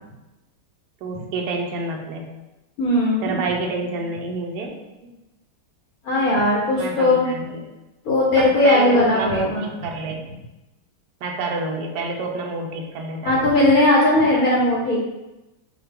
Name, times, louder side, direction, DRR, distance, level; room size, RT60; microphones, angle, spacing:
voice 1, 1.0-2.3 3.2-5.1 6.7-7.7 8.4-10.2 11.2-13.5, right 3 dB, 75° right, 1 dB, 1.2 m, -28 dB
voice 2, 2.8-3.3 6.0-7.3 8.0-9.7 13.2-15.0, left 1 dB, 65° left, -4 dB, 1.2 m, -18 dB
5.7 x 2.3 x 3.6 m, 1.0 s
omnidirectional pair, 1.8 m